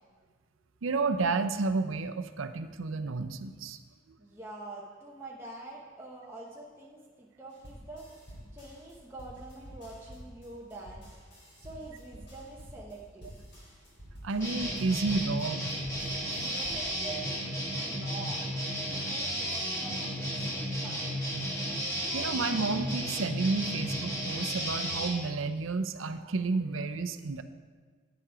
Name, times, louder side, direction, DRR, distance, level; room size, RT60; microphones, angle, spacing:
voice 1, 0.8-3.8 14.2-15.8 22.1-27.4, right 3 dB, 90° right, 9 dB, 0.6 m, -31 dB
voice 2, 4.2-8.1 8.5-11.0 11.6-13.3 16.4-18.4 19.1-21.1, right 2 dB, 15° right, -4 dB, 0.9 m, -46 dB
sound 1, 7.5-17.0, equal, 55° left, 3.4 m, -49 dB
sound 2, 14.4-25.1, equal, 15° left, 1.9 m, -33 dB
9.3 x 7.4 x 4.9 m, 1.5 s
head